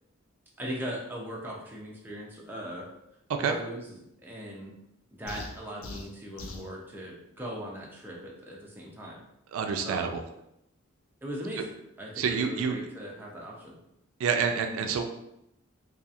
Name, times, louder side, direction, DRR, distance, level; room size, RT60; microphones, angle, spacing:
voice 1, 0.6-2.9 3.4-4.7 5.1-9.2 9.8-10.0 11.2-11.7 12.0-13.7, equal, 10° right, -3 dB, 0.4 m, -39 dB
sound 1, 5.3-6.7, left 2 dB, 70° left, 0.4 m, -41 dB
voice 2, 9.5-10.2 12.2-12.8 14.2-15.0, right 6 dB, 75° right, 6 dB, 0.3 m, -27 dB
2.8 x 2.3 x 2.4 m, 0.82 s
head